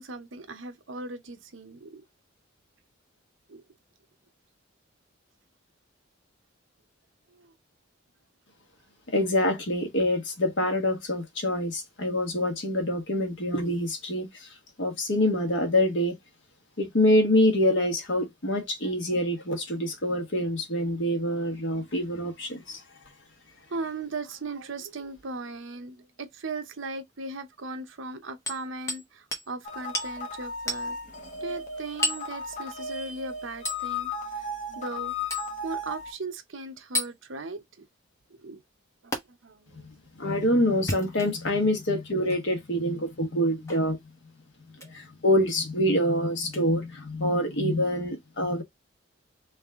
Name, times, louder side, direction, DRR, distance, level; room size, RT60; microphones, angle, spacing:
voice 1, 0.0-2.0 3.5-3.6 7.3-7.5 18.5-18.9 23.7-31.0 31.4-35.1 35.6-37.6 38.3-38.6 39.0-39.9, right 3 dB, 70° right, 0.8 m, -38 dB
voice 2, 9.1-14.3 14.8-16.2 16.8-22.8 40.2-44.0 44.9-48.6, left 1 dB, 60° left, 1.3 m, -26 dB
Hammer, 28.5-29.1 29.3-29.5 29.9-30.1 30.7-30.9 32.0-32.3 33.7-33.8 35.3-35.5 36.9-37.1 39.1-39.2 40.7-41.5 42.3-42.4 43.7-43.9 44.7-44.9 46.5-46.6, left 1 dB, 15° left, 1.1 m, -31 dB
sound 1, 29.6-36.1, left 3 dB, 40° left, 1.0 m, -35 dB
3.5 x 3.1 x 3.6 m
head